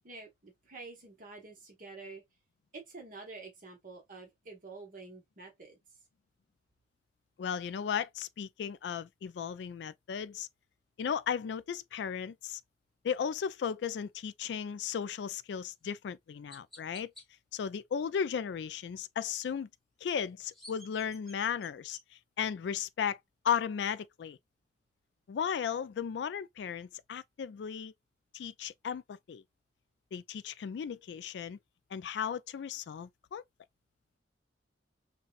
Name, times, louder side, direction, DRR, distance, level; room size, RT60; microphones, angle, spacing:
voice 1, 0.0-2.2 2.7-5.8, right 3 dB, 50° right, 1.2 m, -48 dB
voice 2, 7.4-10.5 11.0-12.6 13.0-17.1 17.5-19.7 20.0-22.0 22.4-23.2 23.4-24.4 25.3-27.9 28.3-29.4 30.1-31.6 31.9-33.4, left 7 dB, 70° left, 0.3 m, -35 dB
Chirp tweet, 15.6-15.7 16.5-17.3 20.2-22.0, left 1 dB, ahead, 1.2 m, -53 dB
5.5 x 2.3 x 2.4 m
head